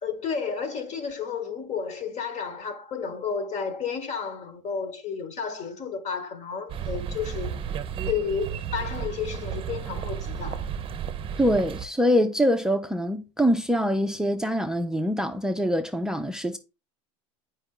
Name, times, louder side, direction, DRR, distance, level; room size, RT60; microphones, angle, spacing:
voice 1, 0.0-7.5 8.0-10.7, left 6 dB, 45° left, 1.6 m, -32 dB
sound 1, 6.7-11.9, right 8 dB, 35° right, 0.7 m, -33 dB
voice 2, 11.4-16.6, equal, 5° right, 0.5 m, -24 dB
7.8 x 5.4 x 3.8 m
supercardioid pair, 105°, 17 cm